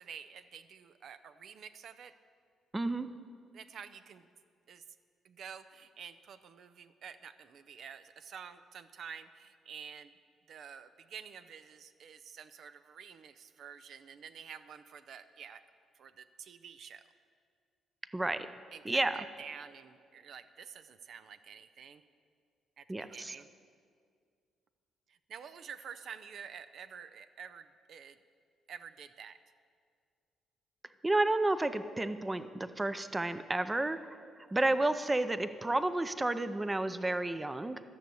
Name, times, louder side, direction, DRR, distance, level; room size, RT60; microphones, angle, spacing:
voice 1, 0.0-2.1 3.5-4.3 4.7-4.8 5.2-10.1 10.5-15.6 15.9-17.0 18.7-22.0 22.8-23.5 25.1-28.2 28.7-29.4 34.7-34.8, right 7 dB, 65° right, 12 dB, 0.5 m, -49 dB
voice 2, 2.7-3.1 18.1-18.5 18.9-19.2 22.9-23.3 31.0-34.0 34.4-37.8, right 2 dB, 15° right, 12 dB, 0.5 m, -31 dB
13.5 x 6.7 x 7.8 m, 2.2 s
cardioid pair, 90°, 0 cm